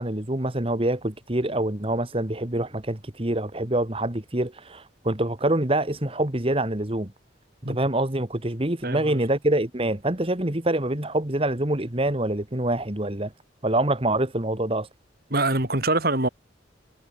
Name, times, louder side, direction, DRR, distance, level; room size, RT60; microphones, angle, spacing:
voice 1, 0.0-7.1 7.7-13.3 13.6-14.9, right 1 dB, 30° right, 1.8 m, -25 dB
voice 2, 8.8-9.2 15.3-16.3, right 2 dB, 55° right, 4.4 m, -24 dB
head